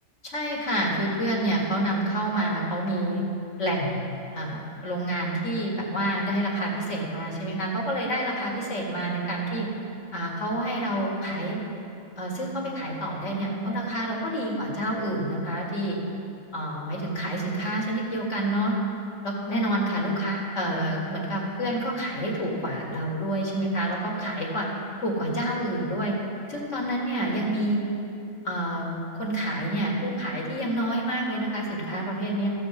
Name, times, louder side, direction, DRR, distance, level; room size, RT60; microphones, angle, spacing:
voice 1, 0.2-3.2 3.6-4.0 4.3-9.7 10.1-11.6 12.2-16.0 16.5-18.7 19.2-24.7 25.0-26.1 26.5-27.8 28.4-28.9 29.2-32.5, right 1 dB, 60° left, -3 dB, 2.2 m, -28 dB
14.0 x 5.0 x 7.5 m, 2.7 s
omnidirectional pair, 1.5 m